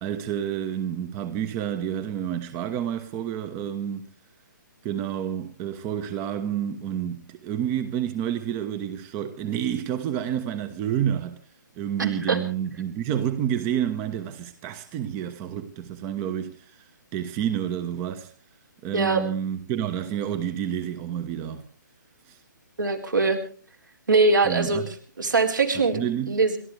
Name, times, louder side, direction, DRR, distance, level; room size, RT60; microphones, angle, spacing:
voice 1, 0.0-4.1 4.8-11.4 11.8-18.3 18.8-21.7 22.3-22.4 24.4-24.9 25.7-26.4, right 10 dB, 20° right, 1.1 m, -29 dB
voice 2, 12.0-12.4 18.9-19.2 22.8-23.4 24.1-24.8 25.2-26.0 26.3-26.6, right 3 dB, 70° right, 4.2 m, -22 dB
29.5 x 13.0 x 3.3 m
figure-of-eight pair, 135°, 11 cm